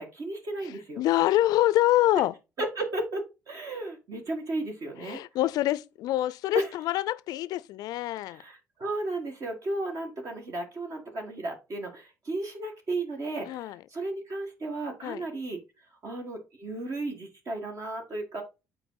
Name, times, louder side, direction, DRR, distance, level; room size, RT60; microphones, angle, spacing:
voice 1, 0.0-1.0 2.6-5.2 6.5-6.7 8.1-15.6 16.0-18.4, right 2 dB, 45° right, 1.9 m, -34 dB
voice 2, 1.0-2.3 5.0-8.4 13.5-13.8 15.0-15.2, left 14 dB, 60° left, 0.5 m, -25 dB
7.9 x 4.5 x 3.9 m
hypercardioid pair, 50°, 7 cm